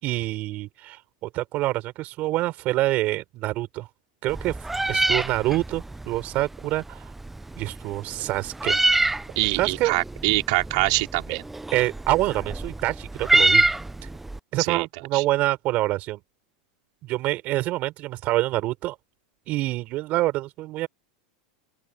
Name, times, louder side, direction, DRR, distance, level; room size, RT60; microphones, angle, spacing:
voice 1, 0.0-3.9 4.2-4.6 4.9-7.1 7.6-8.8 9.6-10.0 11.3-11.4 11.7-13.7 14.5-16.2 17.0-19.0 19.5-20.9, right 17 dB, 40° right, 4.5 m, -26 dB
Meow, 4.3-14.4, right 2 dB, 5° right, 0.4 m, -26 dB
voice 2, 9.3-11.4 14.6-14.9 15.1-15.2, right 25 dB, 60° right, 3.1 m, -24 dB
open air
supercardioid pair, 145°, 4 cm